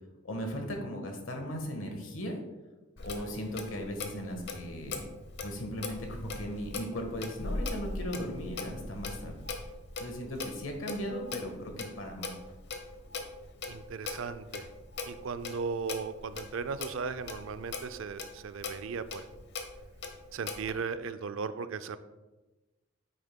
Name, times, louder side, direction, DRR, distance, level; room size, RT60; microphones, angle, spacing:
voice 1, 0.2-2.3 3.0-5.1 5.4-9.5 10.0-12.3, equal, 75° left, 3 dB, 1.3 m, -37 dB
Clock, 3.0-20.7, left 3 dB, 60° left, 0.8 m, -40 dB
voice 2, 13.7-14.7 15.1-19.3 20.3-22.0, right 5 dB, 70° right, 13 dB, 0.4 m, -37 dB
9.0 x 6.5 x 2.2 m, 1.1 s
head